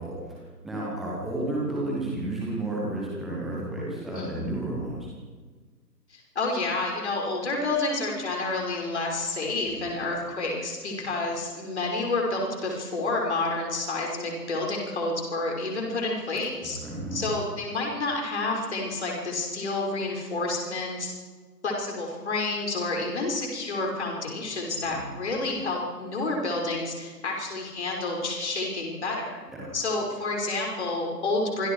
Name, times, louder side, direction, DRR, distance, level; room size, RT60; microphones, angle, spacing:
voice 1, 0.0-5.1 9.7-9.8 16.8-17.2 24.8-25.1 29.5-29.7, right 2 dB, ahead, -5 dB, 1.0 m, -32 dB
voice 2, 4.1-4.5 6.1-16.8 17.1-21.1 21.6-29.4 29.7-31.7, left 2 dB, 40° left, 0 dB, 5.8 m, -29 dB
26.0 x 25.5 x 4.9 m, 1.4 s
figure-of-eight pair, 145°, 49 cm